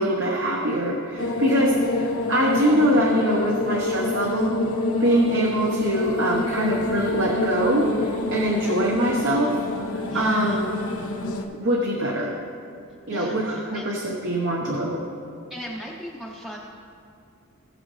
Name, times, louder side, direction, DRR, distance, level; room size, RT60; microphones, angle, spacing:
voice 1, 0.0-4.6 5.0-9.6 10.1-10.7 11.6-12.3 13.1-15.0, right 1 dB, 60° right, -1 dB, 1.1 m, -23 dB
sound 1, 1.2-11.4, left 2 dB, 90° left, 1.1 m, -27 dB
voice 2, 10.1-10.6 13.1-13.9 15.5-16.6, equal, ahead, -4 dB, 0.7 m, -38 dB
18.5 x 6.6 x 3.2 m, 2.5 s
head